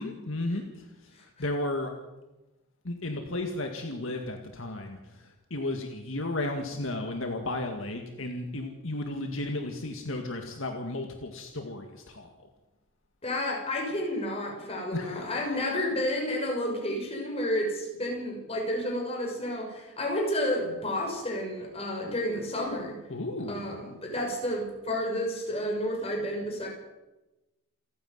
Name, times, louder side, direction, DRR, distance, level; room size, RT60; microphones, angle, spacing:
voice 1, 0.0-1.9 2.8-12.3 14.9-16.0 23.1-23.7, left 2 dB, 65° left, 4 dB, 2.1 m, -34 dB
voice 2, 13.2-23.0 23.5-26.7, left 1 dB, 25° left, 0 dB, 6.5 m, -31 dB
28.5 x 9.8 x 9.5 m, 1.0 s
head